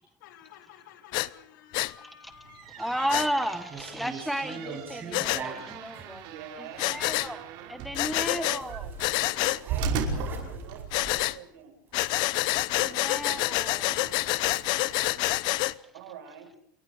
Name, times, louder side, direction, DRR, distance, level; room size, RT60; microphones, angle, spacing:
voice 1, 0.2-2.8, left 9 dB, 75° left, 2.9 m, -52 dB
Breathing, 1.1-1.3 1.7-1.9 3.1-3.3 5.1-5.4 6.8-7.3 7.9-8.6 9.0-9.6 10.9-11.4 11.9-15.7, left 20 dB, 45° left, 0.8 m, -27 dB
sound 1, 2.3-11.2, right 4 dB, 50° right, 5.3 m, -37 dB
voice 2, 2.7-6.2 6.6-8.8 12.8-14.1 15.2-15.4, equal, ahead, 1.3 m, -33 dB
sound 2, 2.9-3.3 3.7-6.1 8.4-11.1 11.4-11.6 11.9-14.7, right 5 dB, 20° right, 5.6 m, -43 dB
voice 3, 6.2-7.0 8.4-9.0 9.6-11.8 12.8-13.6 15.9-16.5, right 8 dB, 85° right, 7.7 m, -45 dB
29.0 x 23.0 x 5.1 m
supercardioid pair, 160°, 10 cm